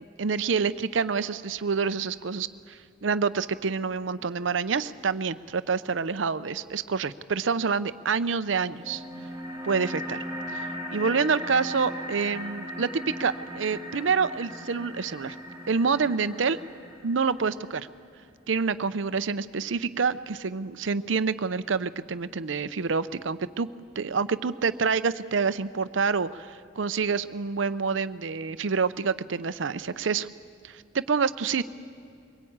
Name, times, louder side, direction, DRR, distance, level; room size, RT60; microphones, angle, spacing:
voice 1, 0.0-9.0 9.6-10.2 10.5-10.7 10.9-15.4 15.7-16.6 17.0-17.9 18.5-23.7 24.0-30.3 30.6-31.6, right 5 dB, 80° right, 14 dB, 0.6 m, -27 dB
sound 1, 8.8-17.8, equal, 15° right, 5.0 m, -38 dB
23.0 x 19.0 x 8.7 m, 2.3 s
head